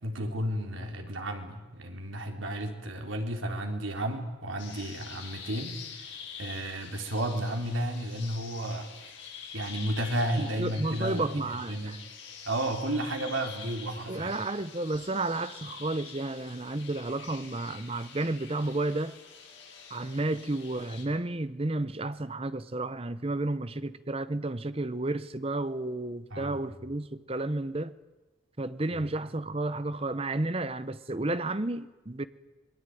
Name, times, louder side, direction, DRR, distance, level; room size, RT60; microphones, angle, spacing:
voice 1, 0.0-6.1 6.4-8.9 9.5-11.3 11.7-12.0 12.5-14.3 26.3-26.6 28.9-29.0, right 1 dB, 80° right, 3.7 m, -32 dB
sound 1, 4.6-21.0, left 6 dB, 70° left, 5.8 m, -46 dB
voice 2, 10.4-12.0 14.1-19.2 19.9-28.0 28.6-32.3, right 2 dB, 30° right, 0.8 m, -32 dB
26.0 x 21.5 x 9.3 m
head